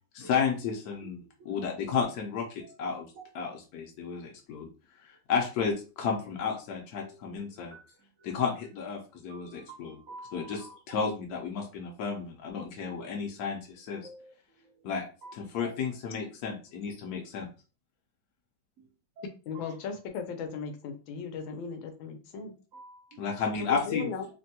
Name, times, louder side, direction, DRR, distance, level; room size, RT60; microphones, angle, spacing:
voice 1, 0.1-3.1 3.3-4.7 5.0-7.8 8.2-10.0 10.3-14.0 14.8-15.0 15.3-17.5 23.2-24.1, left 6 dB, 65° left, 0 dB, 1.0 m, -32 dB
voice 2, 7.0-7.4 7.7-7.8 9.3-10.7 12.1-12.2 12.9-13.0 14.0-14.3 15.2-15.3 15.6-15.8 19.2-19.3 19.5-19.7 22.4-23.2, right 2 dB, 80° right, 1 dB, 0.7 m, -49 dB
voice 3, 19.5-22.5 23.5-24.3, left 5 dB, 85° left, 6 dB, 1.4 m, -37 dB
3.3 x 2.2 x 2.7 m, 0.34 s
omnidirectional pair, 2.1 m